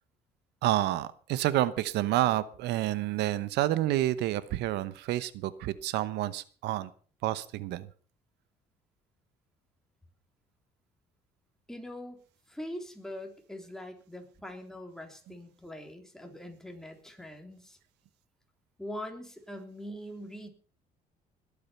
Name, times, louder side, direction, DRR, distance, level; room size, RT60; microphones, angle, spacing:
voice 1, 0.6-6.9 7.2-7.9, right 14 dB, 85° right, 16 dB, 0.9 m, -29 dB
voice 2, 11.7-12.2 12.5-17.8 18.8-20.5, left 1 dB, 5° left, 3 dB, 3.5 m, -42 dB
21.0 x 8.7 x 5.7 m, 0.42 s
cardioid pair, 110°, 17 cm